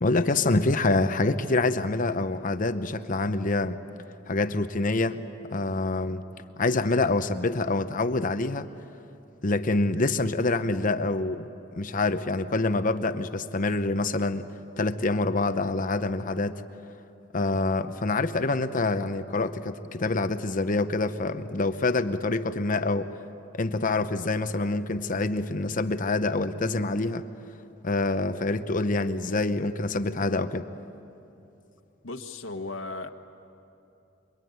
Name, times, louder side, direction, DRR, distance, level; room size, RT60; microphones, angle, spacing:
voice 1, 0.0-3.8 4.3-5.2 5.5-6.3 6.6-8.7 9.4-11.5 11.8-14.5 14.8-16.6 17.3-23.1 23.5-27.3 27.8-30.7, left 2 dB, 45° left, 10 dB, 0.8 m, -26 dB
voice 2, 32.0-33.1, left 3 dB, 85° left, 3 dB, 1.4 m, -36 dB
26.0 x 23.5 x 9.5 m, 2.8 s
head